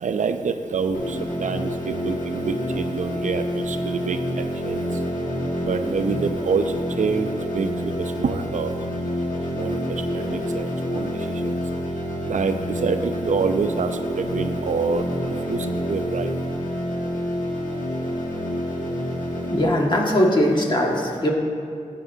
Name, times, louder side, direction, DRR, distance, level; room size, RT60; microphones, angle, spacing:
voice 1, 0.0-4.8 5.6-7.3 7.5-8.7 9.5-9.9 10.1-11.1 11.4-11.6 12.3-13.9 14.2-16.3, right 5 dB, 70° right, 8 dB, 0.5 m, -26 dB
sound 1, 0.9-19.6, equal, 90° left, 1.5 m, -28 dB
voice 2, 19.5-21.3, equal, 35° left, -2 dB, 1.7 m, -20 dB
14.5 x 8.5 x 2.7 m, 2.4 s
cardioid pair, 65°, 13 cm